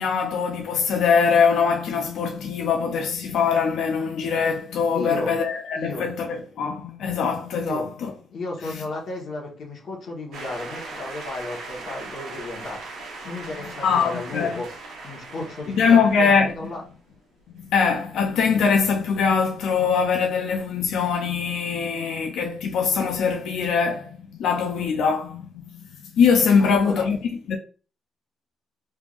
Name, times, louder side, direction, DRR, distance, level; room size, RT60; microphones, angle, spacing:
voice 1, 0.0-8.1 13.8-14.6 15.7-16.5 17.6-25.6 26.1-27.2 27.5-27.6, left 6 dB, 75° left, 0.5 m, -22 dB
voice 2, 4.9-5.4 5.7-6.1 7.6-7.9 8.3-12.8 13.2-14.7 15.0-16.8 26.6-27.1, left 2 dB, 60° left, 1.2 m, -34 dB
sound 1, 10.3-17.1, right 3 dB, 80° right, 1.1 m, -39 dB
3.4 x 3.4 x 2.4 m
cardioid pair, 90°, 0 cm